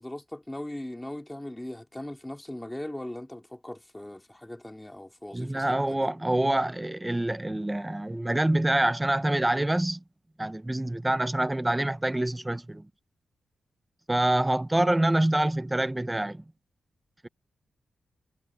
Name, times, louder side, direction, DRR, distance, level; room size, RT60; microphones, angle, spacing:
voice 1, 0.0-6.1, left 1 dB, 10° left, 2.7 m, -39 dB
voice 2, 5.3-10.0 10.4-12.8 14.1-16.4, right 1 dB, 10° right, 0.6 m, -26 dB
wide cardioid pair, 150°, 0 cm